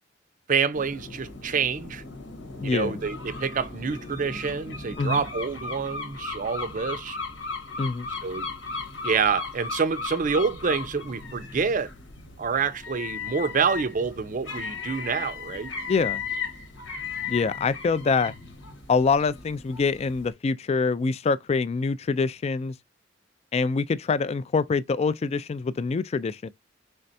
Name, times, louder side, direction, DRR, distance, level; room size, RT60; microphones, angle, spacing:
voice 1, 0.5-2.0 2.6-7.2 8.2-8.5 9.0-11.9 12.4-15.7, right 5 dB, 45° right, 0.5 m, -27 dB
sound 1, 0.7-20.3, left 4 dB, 85° left, 1.2 m, -36 dB
voice 2, 2.6-3.0 5.0-5.2 7.8-8.1 15.9-16.2 17.3-18.3 18.9-22.7 23.5-26.5, left 4 dB, 35° left, 0.3 m, -25 dB
4.4 x 3.3 x 2.6 m
head